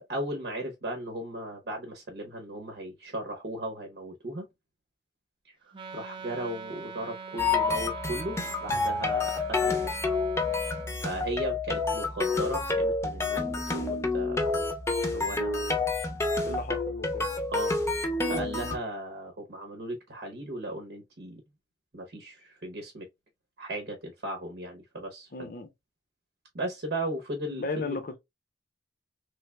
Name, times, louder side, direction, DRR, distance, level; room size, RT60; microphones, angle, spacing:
voice 1, 0.0-4.5 5.5-10.0 11.0-14.6 15.1-15.8 17.5-17.7 18.3-21.4 21.9-23.1 23.6-25.5 26.5-28.0, right 1 dB, 70° right, 0.9 m, -36 dB
Wind instrument woodwind instrument, 5.7-10.9, right 4 dB, 30° right, 0.5 m, -43 dB
sound 1, 7.4-18.8, left 3 dB, 15° left, 0.7 m, -29 dB
voice 2, 16.4-17.3 25.3-25.7 27.5-28.2, left 3 dB, 55° left, 0.7 m, -35 dB
3.4 x 3.2 x 2.3 m
head